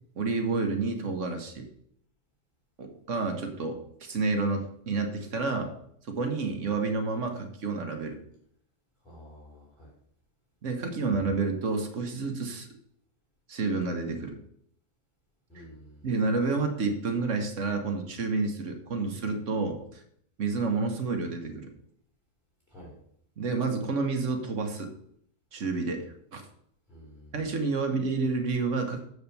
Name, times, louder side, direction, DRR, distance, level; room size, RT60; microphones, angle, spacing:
voice 1, 0.2-1.7 2.8-5.7 6.0-8.2 10.6-12.7 13.5-14.4 15.5-15.7 16.0-20.0 20.4-21.7 23.4-24.9 25.5-26.4 27.3-29.1, right 3 dB, 70° right, 4 dB, 1.5 m, -29 dB
voice 2, 9.0-9.9 15.5-16.1 22.7-22.9 26.9-27.3, equal, ahead, -5 dB, 3.2 m, -50 dB
7.0 x 5.0 x 6.9 m, 0.67 s
omnidirectional pair, 1.4 m